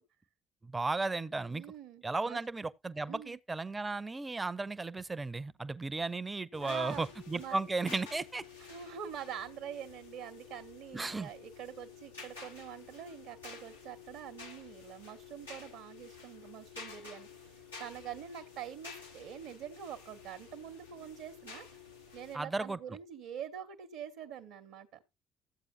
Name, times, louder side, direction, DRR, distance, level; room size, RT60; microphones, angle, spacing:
voice 1, 0.6-1.7 2.0-8.4 10.9-11.3 22.3-22.8, right 3 dB, 20° right, 0.7 m, -35 dB
voice 2, 1.5-2.4 3.1-3.4 6.6-7.1 7.3-7.6 8.6-21.7 22.1-24.9, right 9 dB, 65° right, 1.0 m, -45 dB
sound 1, 6.5-22.4, left 5 dB, 85° left, 1.5 m, -51 dB
13.5 x 8.2 x 2.7 m
figure-of-eight pair, 45°, 0 cm